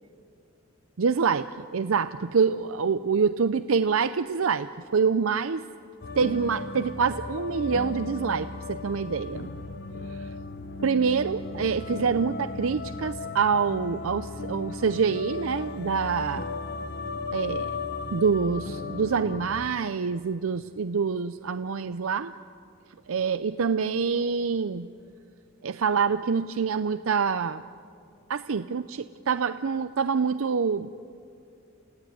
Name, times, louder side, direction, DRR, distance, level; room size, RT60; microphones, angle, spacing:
voice 1, 1.0-5.6 6.2-9.5 10.1-10.3 10.8-16.5 17.3-17.7 18.1-22.3 23.1-24.9 25.6-27.6 28.3-30.9, right 5 dB, 85° right, 11 dB, 0.5 m, -26 dB
sound 1, 6.0-19.7, left 3 dB, 55° left, 0.9 m, -36 dB
29.5 x 16.5 x 9.3 m, 2.5 s
head